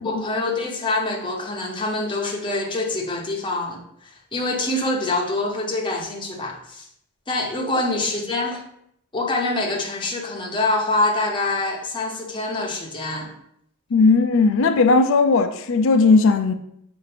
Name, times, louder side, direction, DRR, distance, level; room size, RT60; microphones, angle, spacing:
voice 1, 0.0-6.9 7.3-8.6 9.1-13.3, left 2 dB, 20° left, 0.7 m, -25 dB
voice 2, 13.9-16.5, left 4 dB, 60° left, 0.4 m, -17 dB
5.7 x 2.5 x 3.3 m
head